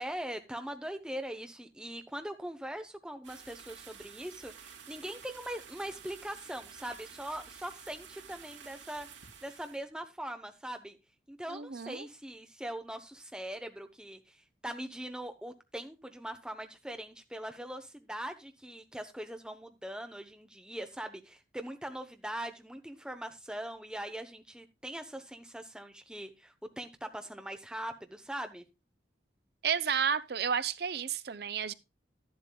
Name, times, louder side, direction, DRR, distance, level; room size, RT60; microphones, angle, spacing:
voice 1, 0.0-9.1 9.4-11.0 11.3-28.6, right 1 dB, 5° right, 0.9 m, -41 dB
sound 1, 3.2-9.8, right 7 dB, 85° right, 2.9 m, -51 dB
voice 2, 11.5-12.1 29.6-31.7, right 7 dB, 55° right, 0.6 m, -31 dB
12.0 x 11.0 x 2.3 m
head